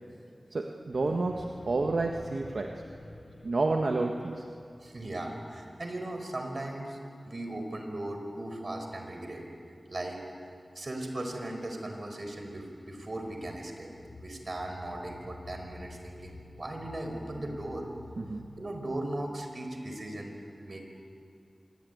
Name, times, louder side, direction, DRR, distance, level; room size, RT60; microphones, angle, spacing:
voice 1, 0.5-2.8 3.4-4.5 18.2-18.5, right 3 dB, 75° right, 2 dB, 1.5 m, -30 dB
sound 1, 0.9-5.9 12.0-19.0, left 2 dB, 80° left, 3.3 m, -50 dB
voice 2, 4.8-7.0 7.3-9.4 9.9-10.2 10.8-13.9 14.2-17.9 18.6-20.9, right 1 dB, 55° right, 4 dB, 5.2 m, -38 dB
26.0 x 22.0 x 9.5 m, 2.4 s
wide cardioid pair, 55°, 0 cm